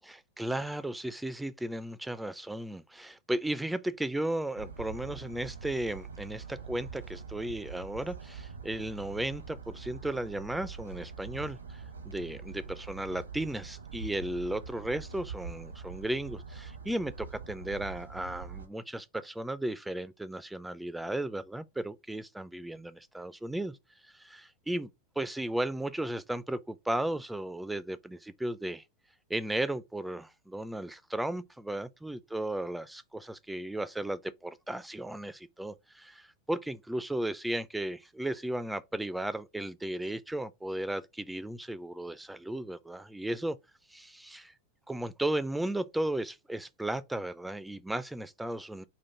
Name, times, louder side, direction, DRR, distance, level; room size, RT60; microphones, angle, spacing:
voice 1, 0.0-23.8 24.0-24.9 25.2-28.8 29.3-43.6 43.9-44.5 44.9-48.8, right 1 dB, 5° right, 0.3 m, -35 dB
sound 1, 4.5-18.7, right 5 dB, 80° right, 0.8 m, -44 dB
4.3 x 2.4 x 4.7 m
figure-of-eight pair, 90°, 0 cm